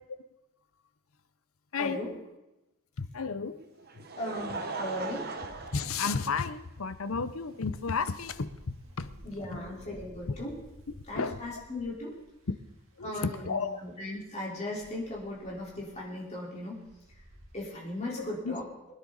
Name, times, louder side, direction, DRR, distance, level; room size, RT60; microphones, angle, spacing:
voice 1, 1.8-2.1 4.2-5.3 9.2-10.5 11.1-12.2 13.0-16.8 17.5-18.6, left 1 dB, 30° left, -4 dB, 4.0 m, -37 dB
voice 2, 3.0-3.6 5.7-9.7 11.1-11.4 13.0-13.8 18.2-18.6, left 5 dB, 70° left, 13 dB, 0.7 m, -33 dB
Laughter, 3.6-6.8 7.6-7.7 9.2-9.3, right 3 dB, 45° right, 1.2 m, -39 dB
Wind, 5.2-18.3, right 1 dB, 65° right, 2.1 m, -55 dB
23.0 x 10.0 x 4.1 m, 0.98 s
head